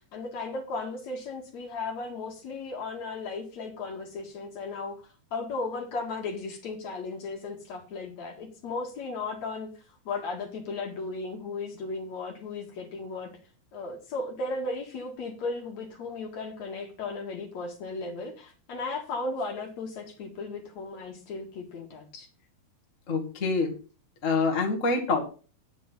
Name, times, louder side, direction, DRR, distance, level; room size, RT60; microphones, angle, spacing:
voice 1, 0.1-9.7 10.1-13.3 13.7-22.3, left 3 dB, 50° left, 3 dB, 2.9 m, -35 dB
voice 2, 23.1-23.8 24.2-25.2, left 3 dB, 30° left, 2 dB, 1.5 m, -26 dB
10.0 x 7.8 x 5.5 m, 0.36 s
omnidirectional pair, 4.4 m